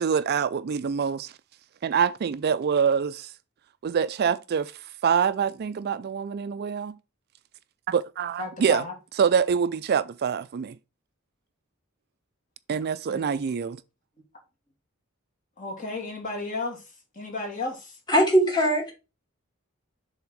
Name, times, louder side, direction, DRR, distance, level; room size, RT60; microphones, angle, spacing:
voice 1, 0.0-1.3 1.8-3.3 3.8-4.7 5.0-7.0 7.9-8.8 9.2-10.8 12.7-13.8, right 7 dB, 50° right, 0.4 m, -25 dB
voice 2, 8.4-8.9 13.1-13.2 15.6-16.8 17.2-17.9, left 3 dB, 40° left, 2.8 m, -33 dB
voice 3, 18.1-18.9, equal, 20° left, 2.5 m, -20 dB
6.9 x 3.6 x 6.2 m
head